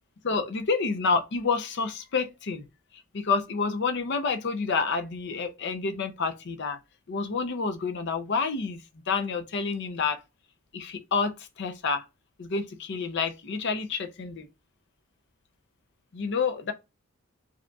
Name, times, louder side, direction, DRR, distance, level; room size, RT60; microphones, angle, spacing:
voice 1, 0.2-2.6 3.1-6.8 7.1-10.2 10.7-12.1 12.4-14.5 16.1-16.7, left 4 dB, 50° left, 0.5 m, -29 dB
5.0 x 2.8 x 2.3 m
head